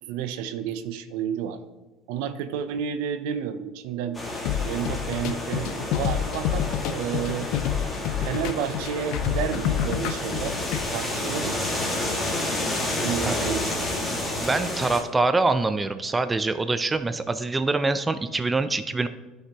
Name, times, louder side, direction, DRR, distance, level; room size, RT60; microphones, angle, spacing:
voice 1, 0.0-1.6 2.1-4.2 4.6-7.5 8.2-10.5 10.9-11.7 13.0-13.9, right 8 dB, 80° right, 10 dB, 0.7 m, -31 dB
sound 1, 4.1-15.0, left 1 dB, 15° left, 2.1 m, -30 dB
sound 2, 4.5-10.9, left 10 dB, 70° left, 0.5 m, -28 dB
voice 2, 14.1-19.1, right 3 dB, 15° right, 10 dB, 0.5 m, -25 dB
11.5 x 5.5 x 3.0 m, 1.2 s
supercardioid pair, 105°, 0 cm